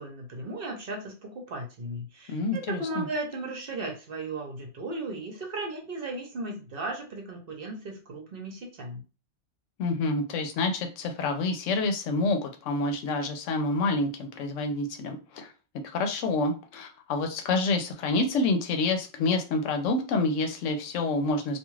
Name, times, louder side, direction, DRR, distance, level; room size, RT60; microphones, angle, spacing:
voice 1, 0.0-9.0, right 2 dB, 55° right, 1 dB, 0.9 m, -36 dB
voice 2, 2.3-3.1 9.8-15.5 15.9-21.6, left 3 dB, 85° left, 5 dB, 1.0 m, -28 dB
2.4 x 2.4 x 3.1 m, 0.33 s
omnidirectional pair, 1.2 m